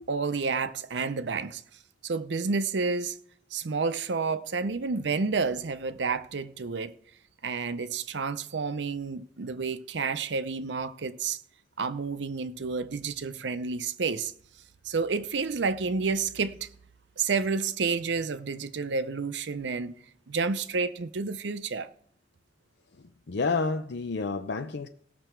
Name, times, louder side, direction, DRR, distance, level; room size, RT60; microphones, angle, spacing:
voice 1, 0.1-1.6 2.0-3.2 3.5-6.9 7.4-11.4 11.8-14.3 14.8-16.7 17.2-20.0 20.3-21.9, right 4 dB, 70° right, 0.6 m, -30 dB
voice 2, 23.0-24.9, left 4 dB, 65° left, 0.6 m, -30 dB
17.5 x 6.8 x 4.5 m
head